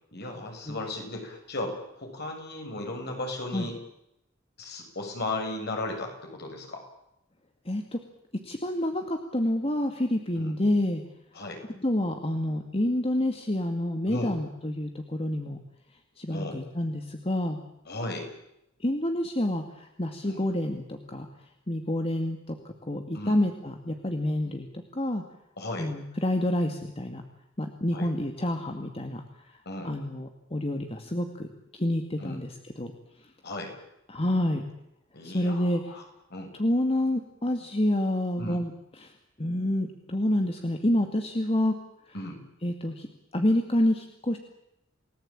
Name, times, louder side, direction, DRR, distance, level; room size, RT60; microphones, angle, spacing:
voice 1, 0.1-3.8 4.6-6.8 10.4-10.5 11.3-11.6 14.1-14.3 16.3-16.6 17.9-18.3 20.3-20.4 23.1-23.4 24.4-24.5 25.6-25.9 27.9-28.1 29.7-29.9 32.2-32.4 33.4-33.7 35.1-36.0 36.3-36.5 38.4-38.6 42.1-42.4, left 2 dB, 55° left, 3 dB, 7.1 m, -35 dB
voice 2, 7.7-8.0 8.4-11.0 11.7-15.6 16.2-17.6 18.8-21.3 21.7-24.7 24.9-25.2 25.8-27.2 27.6-29.2 29.8-31.5 31.7-32.5 32.8-32.9 34.1-34.6 35.2-35.8 36.6-38.7 39.0-39.1 39.4-41.7 42.6-43.1 43.3-44.4, left 1 dB, 30° left, 5 dB, 2.2 m, -28 dB
29.5 x 19.0 x 8.9 m, 0.84 s
head